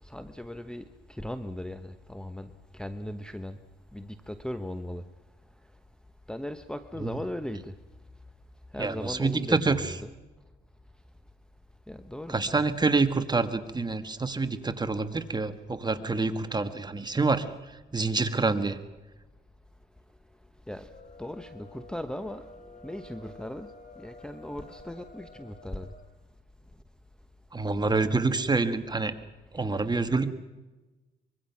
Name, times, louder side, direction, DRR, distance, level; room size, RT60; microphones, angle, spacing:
voice 1, 0.0-3.6 3.9-5.1 6.3-7.8 8.7-10.1 11.9-12.4 20.7-20.9 21.2-23.7 24.0-25.9 27.8-27.9 29.9-30.0, left 1 dB, 5° left, 1.0 m, -38 dB
voice 2, 8.8-9.9 12.3-18.8 27.5-29.1 29.5-30.3, right 3 dB, 20° right, 1.7 m, -27 dB
sound 1, 20.8-26.1, left 2 dB, 40° left, 4.2 m, -50 dB
24.5 x 23.0 x 5.9 m
cardioid pair, 90°, 20 cm